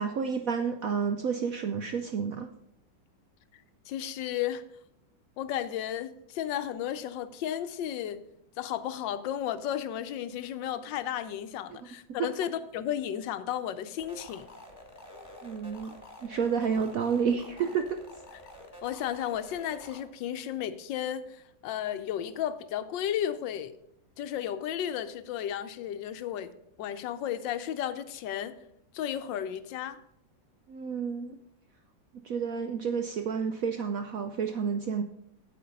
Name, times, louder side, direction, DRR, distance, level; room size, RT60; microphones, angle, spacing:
voice 1, 0.0-2.5 12.2-12.3 15.4-18.0 30.7-31.4 32.2-35.0, right 6 dB, 70° right, 0.8 m, -30 dB
voice 2, 3.9-4.6 5.4-8.2 8.6-14.5 18.8-23.7 24.2-26.5 26.8-28.6 28.9-30.0, left 10 dB, 75° left, 1.3 m, -33 dB
sound 1, 14.0-20.0, left 1 dB, 10° left, 1.6 m, -48 dB
8.6 x 7.9 x 5.2 m
omnidirectional pair, 2.1 m